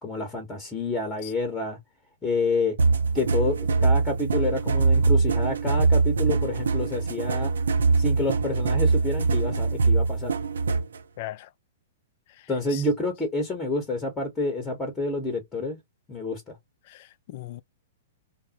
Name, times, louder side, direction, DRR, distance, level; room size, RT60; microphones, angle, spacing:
voice 1, 0.0-1.8 2.2-2.8 3.1-7.5 8.0-10.3 12.5-15.8 16.1-16.6, left 2 dB, 10° left, 0.9 m, -28 dB
sound 1, 2.8-11.0, right 4 dB, 65° right, 0.5 m, -23 dB
voice 2, 11.2-11.5 12.3-12.8 16.9-17.6, left 15 dB, 45° left, 0.3 m, -39 dB
3.5 x 2.0 x 2.8 m
figure-of-eight pair, 110°, 0 cm